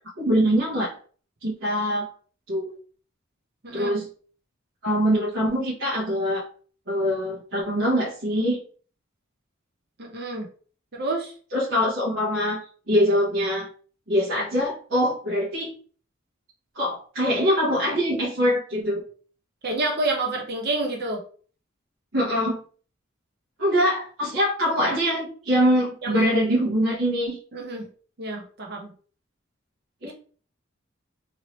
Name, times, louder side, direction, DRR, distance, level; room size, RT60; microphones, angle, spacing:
voice 1, 0.2-1.0 1.4-2.1 2.5-2.8 3.7-4.1 4.8-6.4 6.9-8.6 11.5-12.6 12.9-13.7 14.1-15.7 16.7-19.0 22.1-22.6 23.6-27.4 30.0-30.1, equal, 75° right, -6 dB, 1.0 m, -23 dB
voice 2, 3.6-4.0 10.0-10.5 10.9-11.3 19.6-21.2 26.0-26.3 27.5-27.9 28.2-28.9 30.0-30.1, right 2 dB, 55° right, 1 dB, 0.7 m, -29 dB
3.1 x 2.8 x 2.9 m, 0.42 s
head